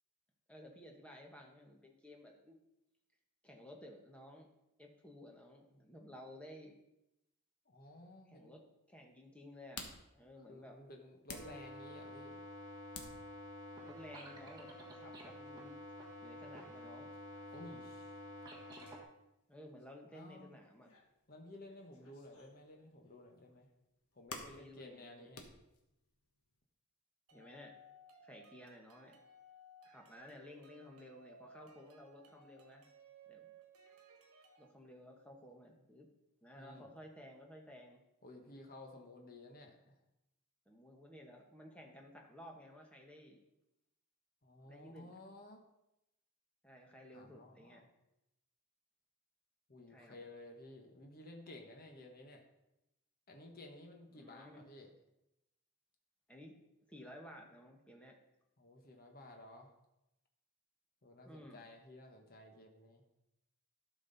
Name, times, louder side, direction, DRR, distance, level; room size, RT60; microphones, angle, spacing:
voice 1, 0.5-2.6 3.4-4.5 4.8-6.8 8.3-8.6 8.9-9.9 10.1-10.8 13.8-15.8 16.2-17.1 19.5-20.9 24.5-25.3 27.3-27.7 28.2-29.2 29.8-32.8 33.3-33.5 34.6-36.1 36.4-38.0 40.7-43.4 44.6-45.1 46.6-47.8 49.9-50.2 54.1-54.6 56.3-56.6 56.9-58.2 61.2-61.6, left 1 dB, 5° left, 1 dB, 1.2 m, -55 dB
voice 2, 7.7-8.6 10.5-12.4 17.5-18.1 20.1-20.6 21.3-23.7 24.1-25.4 36.6-36.9 38.2-40.0 44.4-45.6 47.1-47.8 49.7-52.4 53.3-54.9 58.6-59.7 61.0-63.0, left 1 dB, 40° left, 2 dB, 1.2 m, -54 dB
sound 1, 9.1-26.6, left 3 dB, 80° left, 1.3 m, -56 dB
sound 2, 11.3-19.0, left 1 dB, 20° right, 1.5 m, -50 dB
sound 3, 27.3-34.7, right 1 dB, 80° right, 1.2 m, -61 dB
12.0 x 6.2 x 4.0 m, 0.90 s
head